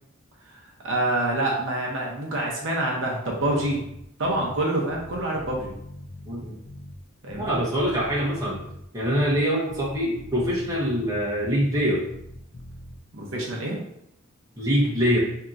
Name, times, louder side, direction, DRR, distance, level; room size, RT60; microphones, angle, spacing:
voice 1, 0.8-3.8 4.2-5.7 7.2-7.6 13.1-13.8, right 1 dB, 60° right, -2 dB, 0.7 m, -26 dB
Bass guitar, 3.4-4.6 4.9-7.0 7.3-9.4 9.7-11.8 12.1-13.0, left 1 dB, 70° left, 0.6 m, -42 dB
voice 2, 6.2-6.6 7.4-8.6 8.9-12.1 14.5-15.2, equal, 15° right, -6 dB, 1.0 m, -24 dB
4.5 x 2.8 x 2.5 m, 0.74 s
head